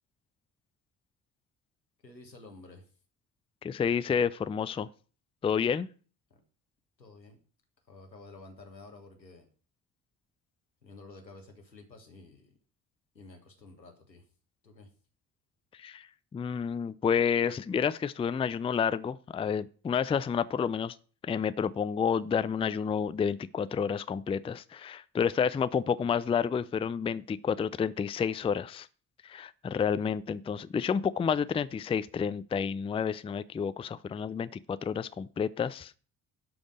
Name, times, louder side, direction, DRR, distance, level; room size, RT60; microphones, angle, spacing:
voice 1, 2.0-2.8 7.0-7.4 7.9-9.5 10.8-12.5 13.1-14.2 14.6-14.9, left 3 dB, 90° left, 1.6 m, -51 dB
voice 2, 3.6-4.9 5.4-5.9 15.8-16.1 16.3-20.9 21.3-28.9 29.2-35.9, left 7 dB, 10° left, 0.4 m, -30 dB
11.5 x 5.2 x 6.4 m
figure-of-eight pair, 45°, 49 cm